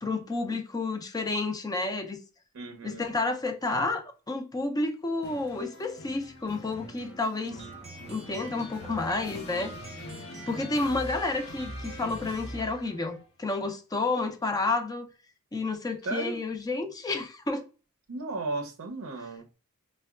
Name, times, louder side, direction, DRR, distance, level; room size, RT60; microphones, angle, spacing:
voice 1, 0.0-2.2 2.8-7.6 8.1-9.7 10.5-15.1 15.5-17.6, left 3 dB, 15° left, 0.4 m, -30 dB
voice 2, 2.5-3.0 16.1-16.4 18.1-19.5, right 3 dB, 60° right, 0.5 m, -35 dB
sound 1, 5.2-13.1, left 1 dB, 65° left, 0.7 m, -43 dB
sound 2, 7.5-13.3, right 2 dB, 30° right, 0.7 m, -46 dB
4.5 x 2.2 x 2.3 m
head